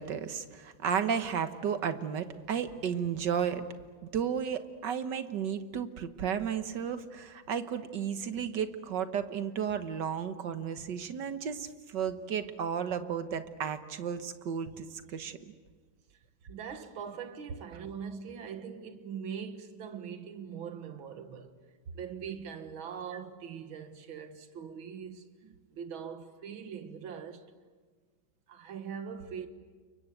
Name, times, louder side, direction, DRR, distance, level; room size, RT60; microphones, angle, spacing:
voice 1, 0.0-3.6 4.0-15.4, right 7 dB, 65° right, 1.8 m, -33 dB
voice 2, 16.5-21.6 21.9-27.5 28.5-29.5, right 7 dB, 85° right, 2.2 m, -42 dB
29.5 x 23.5 x 8.0 m
omnidirectional pair, 2.1 m